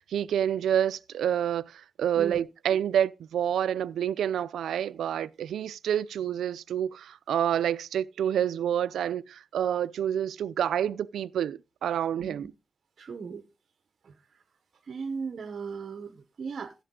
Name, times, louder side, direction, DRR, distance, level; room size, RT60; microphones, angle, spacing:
voice 1, 0.0-12.5, right 9 dB, 90° right, 0.5 m, -28 dB
voice 2, 2.1-2.5 12.2-12.5 13.0-13.4 14.0-14.4 14.8-16.7, right 5 dB, 45° right, 0.9 m, -37 dB
15.5 x 6.9 x 3.8 m
wide cardioid pair, 170°, 0 cm